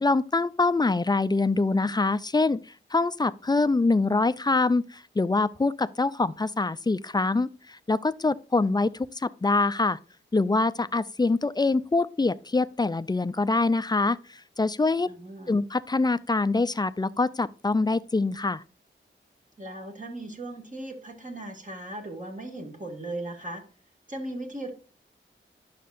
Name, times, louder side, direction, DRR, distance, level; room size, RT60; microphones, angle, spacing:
voice 1, 0.0-2.6 2.9-10.0 10.3-15.1 15.5-18.6, left 3 dB, 20° left, 0.4 m, -24 dB
voice 2, 15.1-15.6 19.6-23.6 24.1-24.7, right 1 dB, 40° right, 2.1 m, -37 dB
11.0 x 6.5 x 2.5 m
cardioid pair, 65°, 21 cm